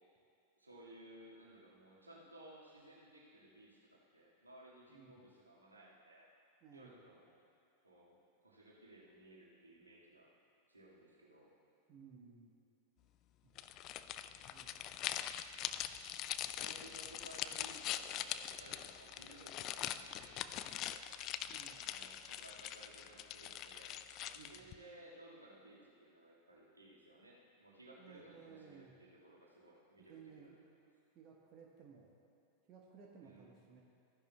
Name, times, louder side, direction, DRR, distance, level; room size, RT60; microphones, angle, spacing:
voice 1, 0.6-6.3 6.7-7.4 7.8-10.3 10.7-11.5 16.5-21.0 21.7-23.9 24.2-30.5 33.2-33.5, right 1 dB, 80° right, -5 dB, 1.8 m, -59 dB
voice 2, 6.6-7.0 11.9-12.5 13.4-13.5 14.5-14.9 21.5-21.9 24.4-24.7 28.0-28.9 30.0-30.6 31.1-32.1 32.7-33.8, right 6 dB, 35° right, -2 dB, 1.1 m, -58 dB
sound 1, 13.5-24.7, left 11 dB, 35° left, 0.3 m, -43 dB
14.5 x 10.5 x 2.2 m, 2.6 s
figure-of-eight pair, 90°, 0 cm